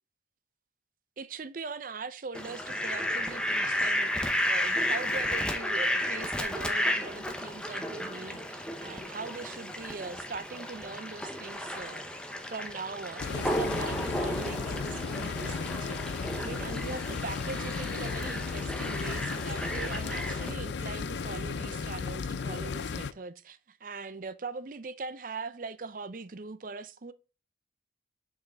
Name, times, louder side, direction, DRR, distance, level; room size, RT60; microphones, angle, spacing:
voice 1, 1.2-12.0 12.5-27.1, right 4 dB, 45° right, 0.5 m, -41 dB
Fowl, 2.3-20.5, left 1 dB, 5° left, 0.8 m, -33 dB
sound 1, 13.2-23.1, left 5 dB, 70° left, 0.5 m, -35 dB
6.2 x 5.6 x 3.9 m
head